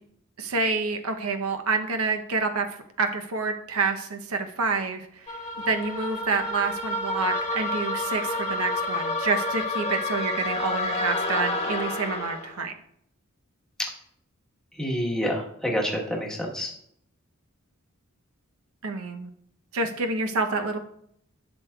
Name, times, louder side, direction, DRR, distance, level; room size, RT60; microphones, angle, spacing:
voice 1, 0.4-12.7 18.8-19.3 19.7-20.8, right 4 dB, 70° right, 6 dB, 0.7 m, -28 dB
sound 1, 5.3-12.5, left 2 dB, 25° left, 1.1 m, -29 dB
voice 2, 14.8-16.7, equal, 5° left, -2 dB, 1.2 m, -28 dB
11.5 x 6.2 x 2.3 m, 0.71 s
head